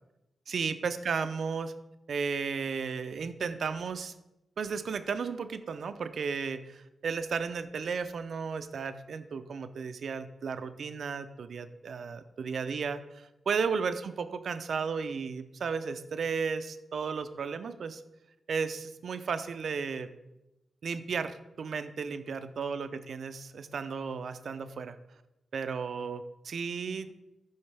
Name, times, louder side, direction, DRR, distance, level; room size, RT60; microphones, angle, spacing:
voice 1, 0.5-1.7 2.1-4.1 4.6-18.0 18.5-20.1 20.8-25.0 25.5-27.1, right 5 dB, 65° right, 10 dB, 0.4 m, -34 dB
11.0 x 3.9 x 3.4 m, 0.93 s
wide cardioid pair, 105°, 0 cm